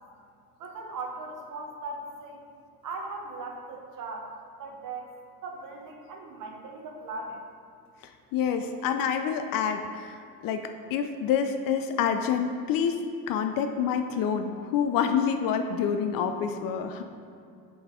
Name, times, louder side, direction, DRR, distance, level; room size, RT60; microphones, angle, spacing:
voice 1, 0.6-2.4 2.8-4.3 4.6-5.1 5.4-7.4, right 3 dB, 40° right, 1 dB, 1.2 m, -38 dB
voice 2, 8.0-10.2 10.4-13.0 13.3-17.0, left 7 dB, 45° left, 7 dB, 0.5 m, -27 dB
6.9 x 3.9 x 4.9 m, 2.4 s
figure-of-eight pair, 55°, 47 cm